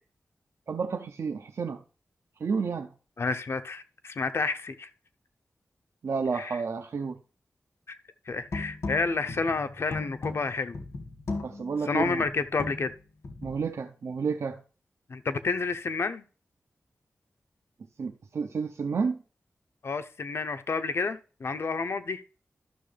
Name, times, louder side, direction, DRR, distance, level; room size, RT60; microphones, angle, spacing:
voice 1, 0.7-1.8 2.4-2.9 6.0-7.2 11.4-12.2 13.4-14.6 18.0-19.2, right 5 dB, 70° right, 0.5 m, -31 dB
voice 2, 3.2-4.9 6.3-6.6 7.9-8.0 8.3-10.8 11.9-12.9 15.1-16.2 19.8-22.2, left 4 dB, 60° left, 0.6 m, -30 dB
sound 1, 8.3-13.7, left 3 dB, 75° left, 1.6 m, -37 dB
12.5 x 6.1 x 3.3 m
wide cardioid pair, 125°, 5 cm